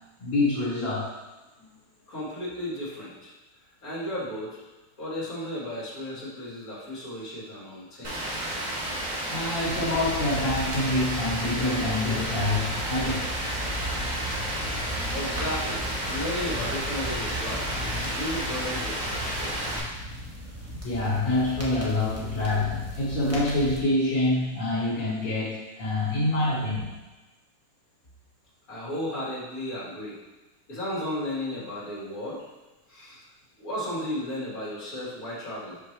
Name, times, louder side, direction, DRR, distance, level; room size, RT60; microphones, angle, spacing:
voice 1, 0.2-1.1 9.3-13.3 20.8-26.9, left 2 dB, 85° left, -6 dB, 2.1 m, -26 dB
voice 2, 2.1-3.3 3.8-4.6 5.0-8.2 15.1-19.8 28.7-30.2 30.7-32.4 32.9-33.2 33.6-35.8, left 1 dB, 50° left, -7 dB, 2.5 m, -34 dB
Rain, 8.0-19.8, right 1 dB, 30° right, 1.0 m, -31 dB
sound 1, 9.6-23.8, left 1 dB, 10° right, 0.8 m, -37 dB
5.8 x 5.4 x 3.3 m, 1.1 s
omnidirectional pair, 2.0 m